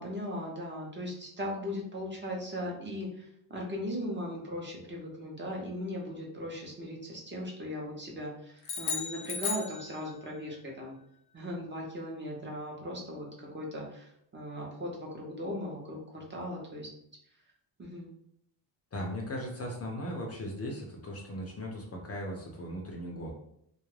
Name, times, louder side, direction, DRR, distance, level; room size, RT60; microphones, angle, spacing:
voice 1, 0.0-11.0 11.3-16.9 17.8-18.1, equal, 25° right, -2 dB, 0.7 m, -38 dB
sound 1, 8.6-10.4, left 6 dB, 85° left, 0.7 m, -35 dB
voice 2, 18.9-23.3, equal, 30° left, 0 dB, 0.5 m, -38 dB
2.3 x 2.1 x 3.1 m, 0.73 s
cardioid pair, 95°, 47 cm